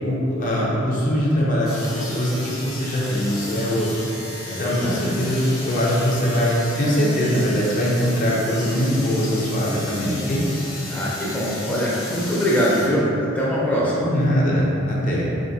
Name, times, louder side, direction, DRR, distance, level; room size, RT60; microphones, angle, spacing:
voice 1, 0.0-3.9 4.6-10.4 14.0-15.3, equal, 40° left, -5 dB, 0.7 m, -22 dB
sound 1, 1.6-12.9, left 2 dB, 80° left, 1.1 m, -35 dB
voice 2, 4.5-5.0 10.9-14.1, equal, 5° left, -7 dB, 0.6 m, -22 dB
4.9 x 2.7 x 2.7 m, 2.8 s
head